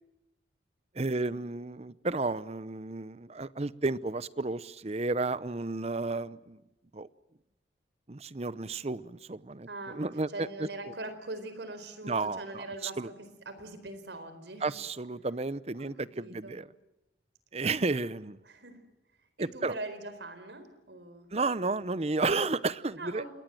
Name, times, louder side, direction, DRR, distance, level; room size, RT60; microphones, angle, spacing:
voice 1, 1.0-6.6 6.9-7.1 8.1-10.3 12.0-12.6 13.0-13.1 14.6-16.6 17.5-18.4 19.4-19.7 21.3-23.2, right 3 dB, 35° right, 17 dB, 0.8 m, -32 dB
voice 2, 9.7-10.0 10.3-14.7 15.8-16.6 18.4-18.8 19.4-21.3 22.3-22.4 23.0-23.3, right 2 dB, 85° right, 10 dB, 4.4 m, -42 dB
27.5 x 21.0 x 7.7 m, 0.97 s
head